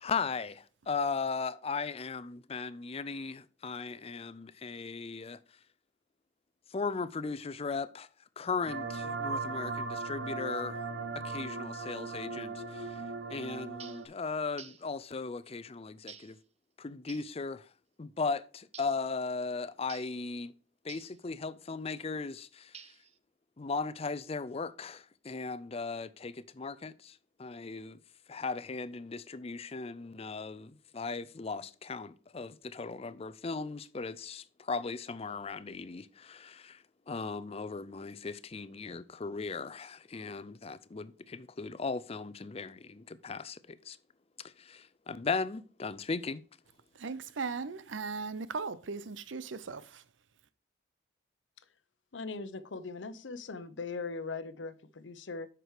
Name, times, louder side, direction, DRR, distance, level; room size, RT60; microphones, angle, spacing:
voice 1, 0.0-5.4 6.7-8.1 8.4-10.8 11.2-12.9 13.3-16.4 16.8-17.6 18.0-20.5 20.8-22.7 23.6-27.1 27.4-28.0 28.3-36.8 37.1-44.0 44.6-46.4, left 4 dB, 35° left, 0.5 m, -37 dB
sound 1, 8.7-14.0, right 4 dB, 65° right, 1.3 m, -38 dB
sound 2, 13.8-14.1 14.6-14.9 16.1-16.4 17.1-17.3 18.7-19.0 19.9-20.2 20.9-21.2 22.7-23.2, right 8 dB, 35° right, 0.6 m, -50 dB
voice 2, 46.9-50.0, right 4 dB, 90° right, 0.7 m, -38 dB
voice 3, 52.1-55.5, left 4 dB, 80° left, 0.8 m, -40 dB
7.9 x 6.1 x 4.8 m
head